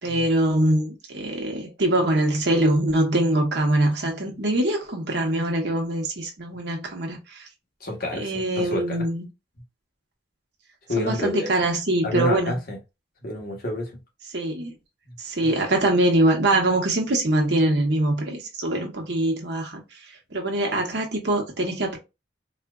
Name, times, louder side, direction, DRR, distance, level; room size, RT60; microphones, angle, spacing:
voice 1, 0.0-7.5 8.1-9.2 11.0-12.6 14.3-14.7 15.2-19.8 20.3-22.0, right 1 dB, 65° right, 1.1 m, -23 dB
voice 2, 7.8-9.0 10.9-11.5 12.0-12.8 13.2-13.9 15.1-15.2, left 1 dB, 55° left, 1.1 m, -28 dB
4.2 x 2.4 x 2.3 m
head